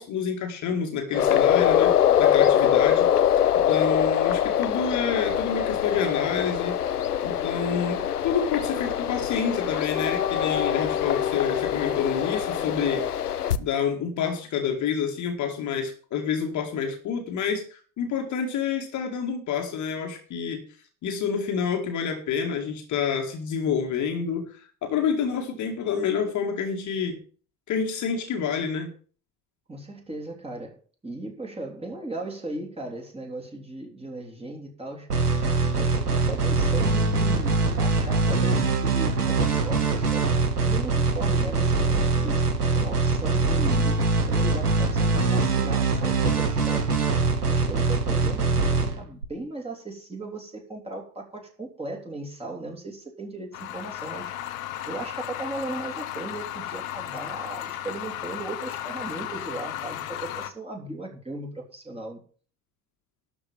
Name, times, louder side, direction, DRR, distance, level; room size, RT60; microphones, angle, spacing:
voice 1, 0.0-6.8 7.2-13.0 13.6-20.7 21.0-27.2 27.7-28.9, left 6 dB, 40° left, 3 dB, 2.0 m, -28 dB
sound 1, 1.1-13.6, left 10 dB, 85° left, 0.7 m, -23 dB
voice 2, 29.7-35.3 35.8-40.3 40.6-42.5 42.7-47.0 47.5-54.3 54.8-62.2, right 2 dB, 15° right, 1 dB, 3.3 m, -37 dB
sound 2, 35.1-49.2, right 3 dB, 85° right, 1.3 m, -23 dB
sound 3, 53.5-60.5, left 12 dB, 65° left, 1.2 m, -35 dB
12.5 x 4.9 x 8.4 m, 0.41 s
figure-of-eight pair, 65°, 45 cm